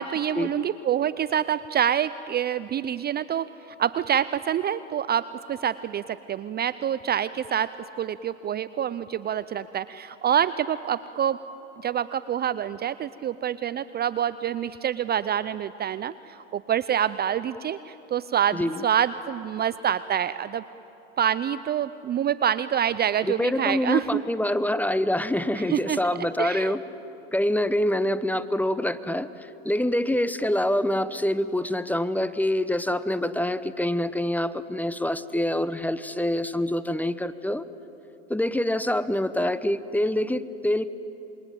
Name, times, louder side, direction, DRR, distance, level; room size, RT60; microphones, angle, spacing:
voice 1, 0.0-3.5 3.8-11.4 11.8-20.6 21.2-24.2 25.6-26.0 26.4-26.8, right 9 dB, 25° right, 15 dB, 0.6 m, -26 dB
voice 2, 18.5-18.8 23.4-26.8 27.3-37.7 38.3-40.9, left 1 dB, 5° left, 14 dB, 0.8 m, -26 dB
27.5 x 22.0 x 9.1 m, 3.0 s
hypercardioid pair, 95°, 36 cm